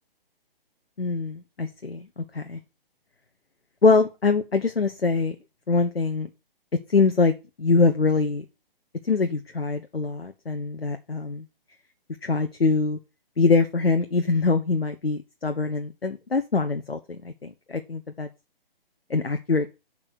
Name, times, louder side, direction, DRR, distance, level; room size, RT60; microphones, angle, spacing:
voice 1, 1.0-2.6 3.8-5.4 5.7-6.3 6.9-7.3 7.6-8.4 9.0-11.4 12.2-13.0 13.4-18.3 19.1-19.7, left 4 dB, 90° left, 1.0 m, -23 dB
8.8 x 4.9 x 6.1 m
figure-of-eight pair, 135°, 29 cm